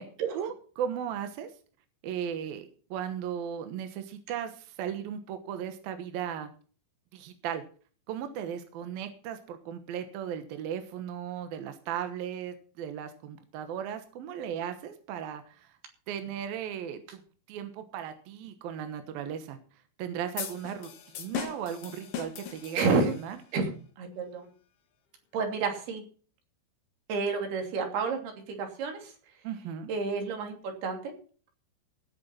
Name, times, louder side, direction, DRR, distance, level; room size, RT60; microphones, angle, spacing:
voice 1, 0.3-1.5 2.0-6.5 7.1-7.6 8.1-15.8 16.1-17.2 17.5-19.6 20.0-22.8 23.2-23.4 29.4-29.9, right 9 dB, 70° right, 8 dB, 2.3 m, -36 dB
sound 1, 20.4-23.4, left 9 dB, 60° left, 2.3 m, -39 dB
voice 2, 22.8-23.1 23.5-24.5 25.3-26.0 27.1-28.3 28.6-29.1 29.9-31.1, right 4 dB, 55° right, 4 dB, 4.4 m, -30 dB
17.0 x 7.0 x 5.7 m, 0.40 s
omnidirectional pair, 5.8 m